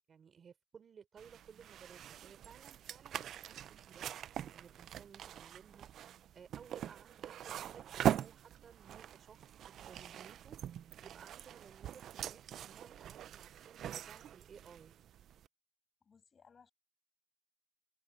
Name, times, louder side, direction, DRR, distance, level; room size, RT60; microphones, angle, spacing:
voice 1, 0.0-4.1 4.5-5.9 6.3-9.5 9.9-10.6 11.0-14.9, right 7 dB, 50° right, 3.8 m, -58 dB
sound 1, 1.2-15.5, right 10 dB, 70° right, 0.5 m, -42 dB
voice 2, 16.0-16.7, left 6 dB, 45° left, 6.6 m, -63 dB
cardioid pair, 90°, 0 cm